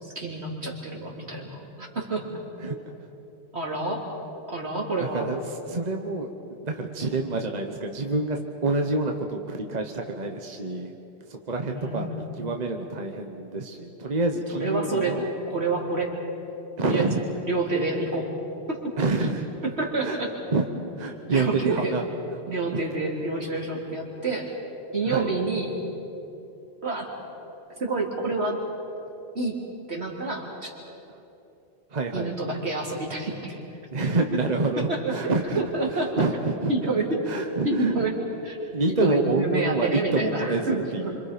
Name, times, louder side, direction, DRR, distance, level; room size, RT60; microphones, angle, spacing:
voice 1, 0.0-2.2 3.5-4.1 4.5-5.3 6.8-6.9 11.7-12.3 14.5-15.2 15.5-16.1 16.8-17.1 17.4-18.3 18.7-19.0 19.6-20.3 21.3-21.9 22.5-24.5 24.9-25.8 26.8-27.1 27.8-28.6 29.3-29.6 29.9-30.7 32.1-33.6 34.9-36.2 36.7-38.1 38.4-41.2, right 3 dB, 75° right, -1 dB, 3.4 m, -28 dB
voice 2, 5.0-5.4 5.7-6.3 6.6-10.9 11.3-15.3 16.8-17.2 19.0-19.5 20.0-20.2 20.5-20.6 21.0-22.0 22.7-22.8 25.1-25.3 31.9-32.3 33.9-35.6 35.9-36.7 37.3-38.1 38.7-41.2, right 3 dB, 40° right, 3 dB, 1.3 m, -27 dB
27.0 x 26.0 x 5.2 m, 2.9 s
omnidirectional pair, 1.1 m